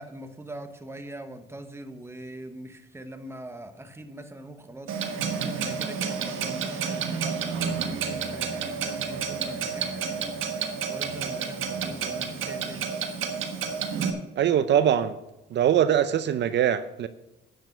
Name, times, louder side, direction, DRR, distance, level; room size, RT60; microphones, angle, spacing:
voice 1, 0.0-4.9 5.5-10.4 10.9-12.8, right 1 dB, 15° right, 7 dB, 1.2 m, -42 dB
Clock, 4.9-14.1, right 6 dB, 85° right, 1.4 m, -30 dB
voice 2, 14.4-15.2 15.5-17.1, right 9 dB, 65° right, 12 dB, 0.6 m, -22 dB
10.5 x 6.6 x 6.7 m, 0.91 s
cardioid pair, 90°, 20 cm